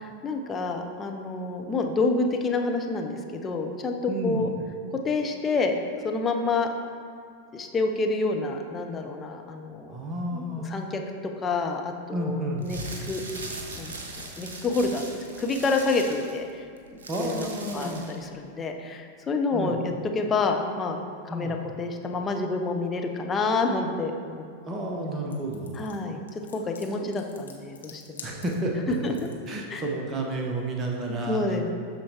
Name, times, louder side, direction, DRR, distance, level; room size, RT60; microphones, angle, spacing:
voice 1, 0.0-4.5 5.0-5.7 6.0-6.7 7.5-9.9 10.3-11.0 11.4-12.8 13.1-13.2 13.8-13.9 14.4-15.0 15.4-16.7 16.9-21.0 21.3-24.4 25.8-26.2 26.5-28.2 29.0-29.3 29.7-29.8 31.3-31.7, left 3 dB, 20° left, 3 dB, 0.6 m, -28 dB
voice 2, 4.1-4.5 9.9-10.7 12.1-12.9 17.1-18.1 19.5-19.8 21.3-21.6 24.7-25.8 28.2-28.9 29.5-31.7, right 1 dB, 25° right, 0 dB, 1.0 m, -31 dB
sound 1, 12.5-18.3, right 2 dB, 65° right, 0.9 m, -40 dB
sound 2, 25.3-29.5, left 5 dB, 70° left, 0.7 m, -47 dB
12.5 x 4.4 x 2.9 m, 2.2 s
figure-of-eight pair, 90°, 0 cm